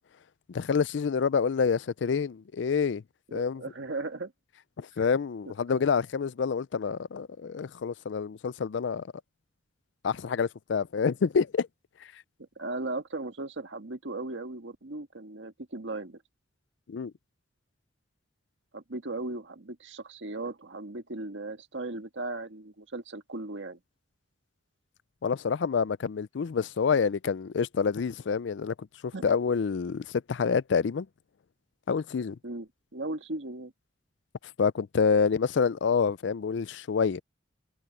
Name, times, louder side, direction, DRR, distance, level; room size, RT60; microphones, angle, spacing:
voice 1, 0.5-3.0 3.3-3.6 4.8-9.1 10.0-11.7 16.9-17.1 25.2-31.1 31.9-32.4 34.6-37.2, left 5 dB, 70° left, 0.4 m, -27 dB
voice 2, 3.3-4.3 5.0-5.1 5.7-5.8 12.6-16.2 18.7-23.8 29.1-29.2 32.4-33.7, right 2 dB, 85° right, 1.6 m, -37 dB
head